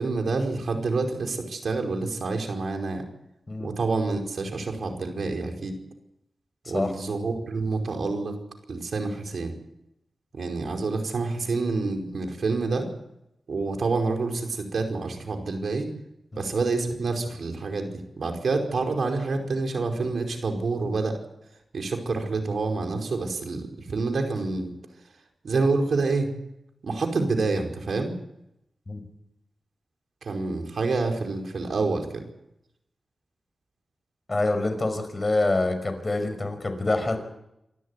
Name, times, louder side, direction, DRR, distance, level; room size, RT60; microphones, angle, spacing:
voice 1, 0.0-3.0 3.6-5.8 6.7-8.3 8.7-9.5 10.4-12.9 13.5-15.9 16.4-21.2 21.7-24.7 25.4-26.3 26.8-28.2 30.2-32.2, right 3 dB, 75° right, 4 dB, 5.0 m, -27 dB
voice 2, 34.3-37.2, left 2 dB, 35° left, 7 dB, 5.6 m, -26 dB
27.0 x 13.0 x 9.8 m, 0.83 s
cardioid pair, 65°, 0 cm